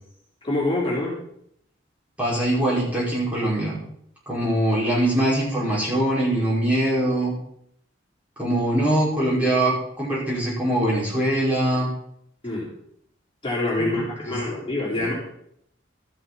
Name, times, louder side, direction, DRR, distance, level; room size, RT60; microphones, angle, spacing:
voice 1, 0.4-1.2 12.4-12.7 13.4-15.1, left 2 dB, 25° left, -6 dB, 4.4 m, -25 dB
voice 2, 2.2-3.8 4.3-7.3 8.4-11.9 13.8-14.4 15.0-15.1, right 1 dB, 10° right, -7 dB, 5.3 m, -23 dB
13.5 x 12.5 x 4.2 m, 0.71 s
head